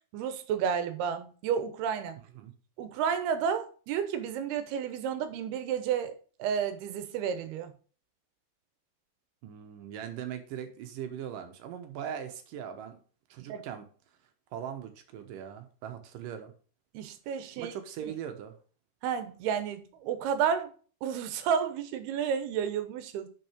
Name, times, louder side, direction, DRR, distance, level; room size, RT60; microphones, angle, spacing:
voice 1, 0.1-2.2 2.8-7.7 13.5-13.6 16.9-17.7 18.0-18.1 19.0-20.7 21.0-23.3, right 7 dB, 90° right, 2.9 m, -31 dB
voice 2, 9.4-13.0 13.3-13.9 14.5-16.5 17.6-18.6, right 9 dB, 70° right, 2.4 m, -40 dB
6.5 x 6.2 x 6.0 m
omnidirectional pair, 4.5 m